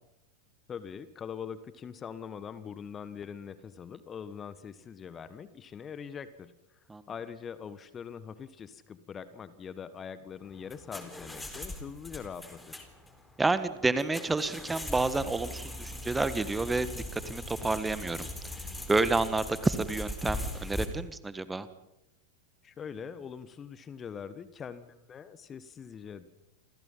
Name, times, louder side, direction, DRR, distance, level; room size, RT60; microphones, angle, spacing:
voice 1, 0.7-6.5 7.1-12.9 22.6-26.3, left 7 dB, 25° left, 14 dB, 1.4 m, -43 dB
sound 1, 10.4-20.9, left 1 dB, 5° left, 4.2 m, -40 dB
voice 2, 13.4-18.3 18.9-21.7, right 3 dB, 10° right, 13 dB, 1.6 m, -29 dB
29.0 x 26.5 x 5.8 m, 0.88 s
figure-of-eight pair, 90°, 0 cm